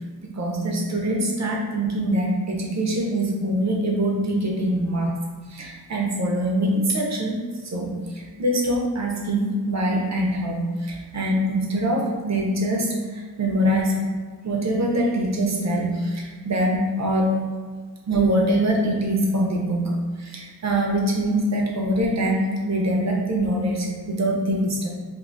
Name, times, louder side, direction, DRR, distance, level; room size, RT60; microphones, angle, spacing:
voice 1, 0.2-5.2 5.5-14.0 14.4-17.4 18.1-24.9, right 1 dB, 45° right, -1 dB, 0.7 m, -24 dB
2.6 x 2.5 x 3.8 m, 1.5 s
wide cardioid pair, 135°, 37 cm